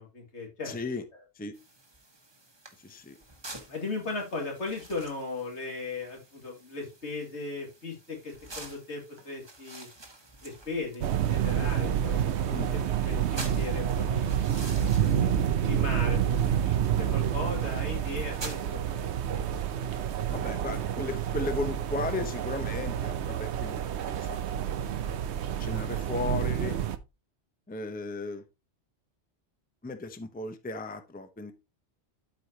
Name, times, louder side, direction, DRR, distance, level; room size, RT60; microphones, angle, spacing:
voice 1, 0.0-0.8 1.1-1.2 3.7-9.9 10.4-12.2 12.5-15.3 15.6-16.3 16.6-18.9 19.3-19.5 19.8-20.2, left 3 dB, 80° left, 0 dB, 2.7 m, -37 dB
voice 2, 0.6-1.0 1.3-1.5 2.8-3.2 12.5-12.7 20.3-24.4 24.7-25.3 25.6-26.8 27.7-28.4 29.8-31.5, left 3 dB, 10° left, 8 dB, 0.7 m, -36 dB
sound 1, 1.5-18.7, right 2 dB, 25° right, 1.3 m, -48 dB
sound 2, 11.0-27.0, right 9 dB, 75° right, 1.0 m, -28 dB
12.0 x 4.9 x 2.8 m, 0.25 s
omnidirectional pair, 1.2 m